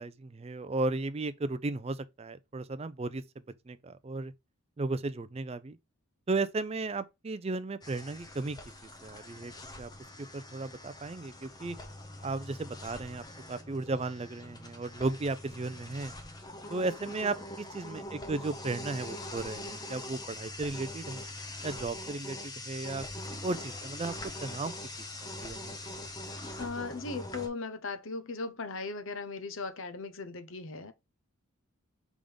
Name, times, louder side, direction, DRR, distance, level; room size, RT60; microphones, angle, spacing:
voice 1, 0.0-3.2 3.7-4.3 4.8-5.8 6.3-8.6 9.0-9.5 9.8-9.9 10.2-11.8 12.2-13.2 13.5-16.1 16.7-21.2 21.6-23.0 23.4-24.1 24.4-24.7 25.4-25.7, right 3 dB, 30° right, 0.4 m, -35 dB
sound 1, 7.8-27.5, left 1 dB, 20° left, 0.8 m, -43 dB
voice 2, 26.6-30.9, left 3 dB, 65° left, 0.8 m, -38 dB
5.1 x 3.6 x 5.2 m
head